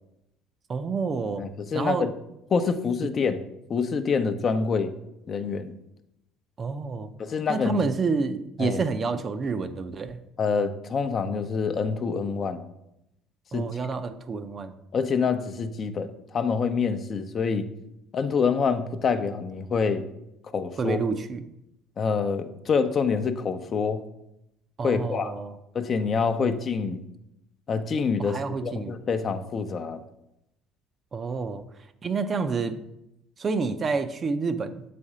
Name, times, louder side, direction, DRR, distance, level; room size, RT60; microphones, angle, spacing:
voice 1, 0.7-1.4 1.7-2.1 6.6-7.1 7.5-10.2 13.5-14.7 20.8-21.4 24.8-25.5 28.2-28.9 31.1-31.6 32.0-32.8 33.4-34.8, right 4 dB, 35° right, 10 dB, 0.5 m, -28 dB
voice 2, 1.4-2.1 2.5-3.4 3.7-4.9 5.3-5.7 7.2-7.9 8.6-8.8 10.4-12.6 13.5-13.7 14.9-17.7 18.1-20.1 20.5-21.0 22.0-24.0 24.8-25.3 25.7-27.0 27.7-30.0, left 5 dB, 40° left, 9 dB, 0.6 m, -26 dB
7.0 x 4.2 x 4.9 m, 0.85 s
supercardioid pair, 90°, 0 cm